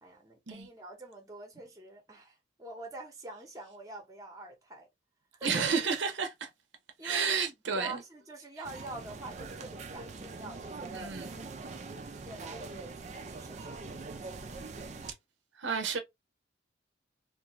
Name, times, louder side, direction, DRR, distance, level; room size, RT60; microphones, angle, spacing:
voice 1, 0.0-4.9 5.4-5.7 7.0-7.3 7.7-11.6 12.1-14.6 14.9-15.1, right 2 dB, 20° right, 0.8 m, -46 dB
voice 2, 5.4-6.5 7.0-8.0 10.9-11.3 15.6-16.0, right 5 dB, 80° right, 0.6 m, -31 dB
sound 1, 8.6-15.1, right 3 dB, 35° right, 0.3 m, -43 dB
2.6 x 2.5 x 3.0 m
head